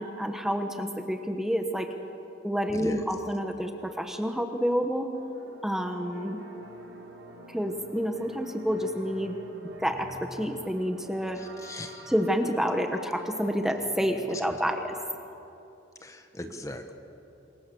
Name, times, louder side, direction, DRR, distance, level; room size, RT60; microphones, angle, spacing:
voice 1, 0.0-1.9 2.4-5.1 5.6-6.4 7.5-9.4 9.8-11.4 12.1-15.0, equal, ahead, 5 dB, 1.2 m, -29 dB
voice 2, 2.7-3.0 11.4-12.1 16.0-16.9, left 1 dB, 15° left, 6 dB, 1.3 m, -39 dB
sound 1, 5.1-14.7, right 1 dB, 85° right, 3.6 m, -48 dB
27.5 x 22.5 x 7.1 m, 2.9 s
head